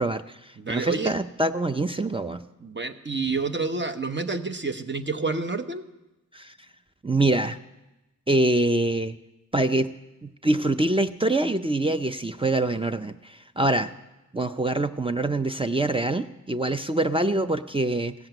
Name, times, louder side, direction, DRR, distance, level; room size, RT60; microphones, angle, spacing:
voice 1, 0.0-2.4 6.3-6.5 7.0-7.6 8.3-9.1 9.5-9.9 10.2-13.9 14.3-18.1, right 2 dB, 15° right, 9 dB, 0.5 m, -25 dB
voice 2, 0.6-1.1 2.6-5.8, right 4 dB, 35° right, 8 dB, 1.0 m, -29 dB
16.0 x 7.8 x 9.0 m, 1.0 s
wide cardioid pair, 75°, 31 cm